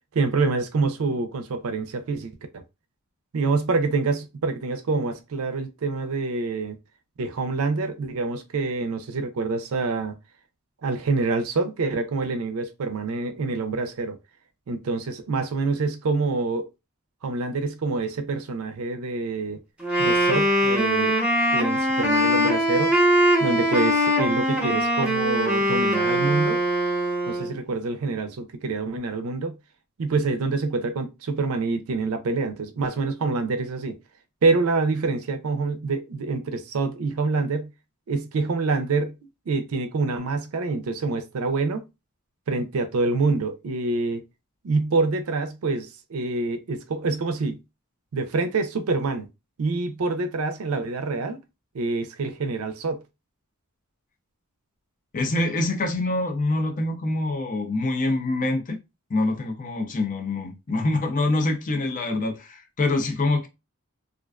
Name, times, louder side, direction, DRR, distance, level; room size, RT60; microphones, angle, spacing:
voice 1, 0.1-2.6 3.3-6.8 7.2-10.1 10.8-14.2 14.7-16.7 17.2-19.6 20.0-21.2 21.5-23.0 23.4-26.6 27.3-29.6 30.0-34.0 34.4-37.7 38.1-39.1 39.5-41.8 42.5-44.2 44.6-47.6 48.1-49.3 49.6-51.4 51.7-53.0, right 3 dB, 70° right, 0.4 m, -26 dB
Wind instrument woodwind instrument, 19.8-27.5, equal, 5° right, 0.7 m, -22 dB
voice 2, 55.1-58.8 59.1-63.5, left 2 dB, 35° left, 0.5 m, -25 dB
2.4 x 2.2 x 2.3 m
head